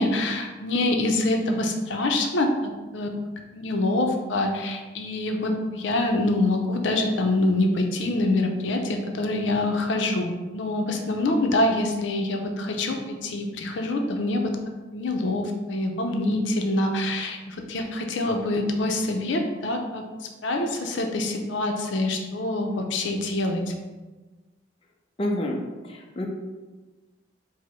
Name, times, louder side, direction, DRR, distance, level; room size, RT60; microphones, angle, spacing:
voice 1, 0.0-3.1 3.5-14.5 14.9-20.0 20.4-23.7, left 2 dB, 80° left, 3 dB, 0.5 m, -25 dB
voice 2, 25.2-25.6 25.9-26.3, left 1 dB, 30° left, 0 dB, 0.4 m, -28 dB
4.7 x 2.0 x 4.3 m, 1.2 s
head